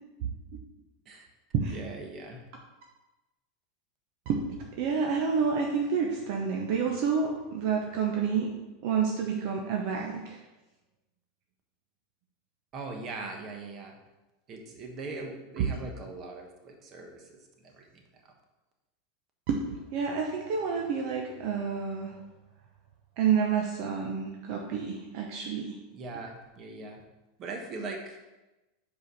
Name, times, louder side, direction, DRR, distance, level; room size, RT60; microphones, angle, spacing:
voice 1, 0.2-0.6 1.5-1.8 4.3-8.5 8.8-10.4 15.6-15.7 19.5-22.1 23.2-25.8, right 6 dB, 60° right, 1 dB, 0.9 m, -29 dB
voice 2, 1.7-2.4 12.7-13.9 14.5-17.2 17.6-17.8 25.9-27.0 27.4-28.2, right 3 dB, 40° right, 3 dB, 1.3 m, -40 dB
4.8 x 4.8 x 5.5 m, 1.1 s
hypercardioid pair, 110°, 0 cm